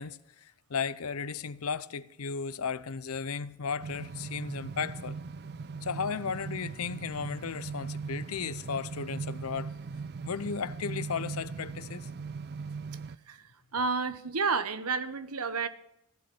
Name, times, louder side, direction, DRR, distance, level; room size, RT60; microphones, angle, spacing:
voice 1, 0.0-5.2 5.8-9.7 10.2-12.1, left 6 dB, 75° left, 0.7 m, -35 dB
sound 1, 3.8-13.1, right 4 dB, 50° right, 0.4 m, -39 dB
voice 2, 13.7-15.7, right 4 dB, 90° right, 1.2 m, -30 dB
16.0 x 8.4 x 7.1 m
head